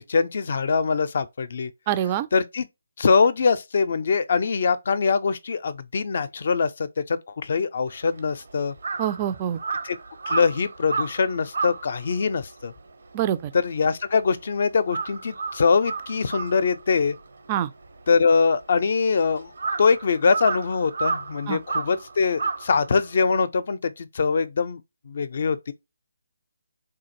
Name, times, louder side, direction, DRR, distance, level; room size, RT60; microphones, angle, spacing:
voice 1, 0.0-1.7 2.3-2.7 3.0-8.7 9.8-10.0 10.3-12.7 13.5-17.2 18.1-19.5 19.8-24.8 25.1-25.7, left 5 dB, 55° left, 0.4 m, -23 dB
voice 2, 1.9-2.3 9.0-9.6 13.1-13.5 17.5-17.7 21.5-21.6, right 11 dB, 25° right, 0.3 m, -25 dB
Crow, 7.9-14.4 14.7-23.3, right 4 dB, 70° right, 0.7 m, -32 dB
3.7 x 2.5 x 2.7 m
figure-of-eight pair, 155°, 0 cm